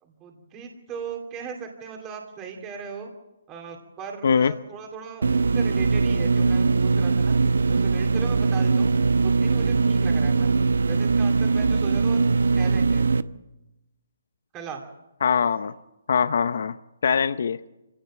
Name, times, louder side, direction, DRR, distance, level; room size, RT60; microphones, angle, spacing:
voice 1, 0.0-3.1 3.5-7.4 7.7-8.9 9.2-10.5 10.8-12.2 12.6-13.1 14.5-14.8, right 6 dB, 20° right, 2 dB, 2.6 m, -38 dB
sound 1, 5.2-13.2, right 4 dB, 80° right, 0.8 m, -21 dB
voice 2, 15.2-15.7 16.1-16.7 17.0-17.7, left 6 dB, 60° left, 12 dB, 0.7 m, -22 dB
25.0 x 17.0 x 7.4 m, 0.97 s
hypercardioid pair, 160°, 0 cm